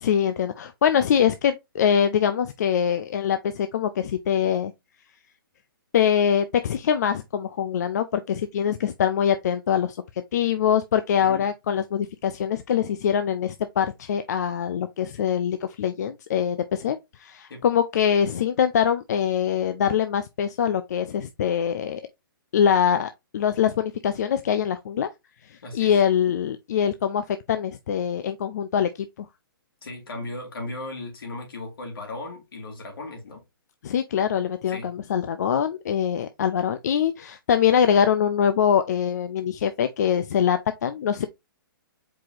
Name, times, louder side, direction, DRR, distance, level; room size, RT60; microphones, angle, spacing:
voice 1, 0.0-4.7 5.9-10.0 10.3-22.0 22.5-25.1 25.5-29.3 33.8-41.3, left 8 dB, 45° left, 0.4 m, -23 dB
voice 2, 25.6-26.0 29.8-33.4 34.7-34.9, left 2 dB, 75° left, 2.6 m, -36 dB
4.8 x 2.9 x 3.8 m
hypercardioid pair, 165°, 12 cm